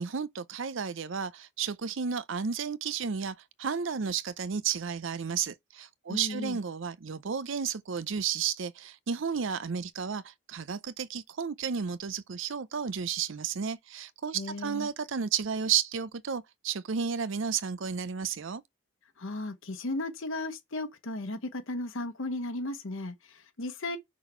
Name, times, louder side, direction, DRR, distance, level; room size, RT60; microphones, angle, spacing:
voice 1, 0.0-18.6, right 7 dB, 60° right, 0.5 m, -32 dB
voice 2, 6.1-6.6 14.3-14.9 19.2-24.0, left 2 dB, 65° left, 1.0 m, -35 dB
6.0 x 4.1 x 4.4 m
head